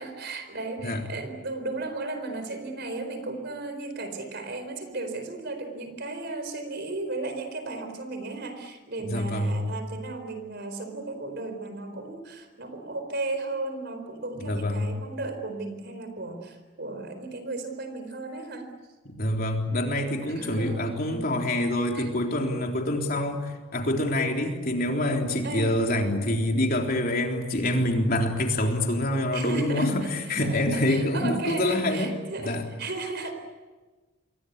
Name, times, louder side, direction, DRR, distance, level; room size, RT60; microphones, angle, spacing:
voice 1, 0.0-18.7 20.3-21.2 21.9-22.1 25.4-25.7 29.3-30.1 30.4-33.3, right 2 dB, 50° right, 7 dB, 4.3 m, -35 dB
voice 2, 9.0-9.6 14.4-14.9 19.1-32.1 32.4-32.6, left 1 dB, 45° left, 2 dB, 3.7 m, -26 dB
27.0 x 24.0 x 8.3 m, 1.3 s
head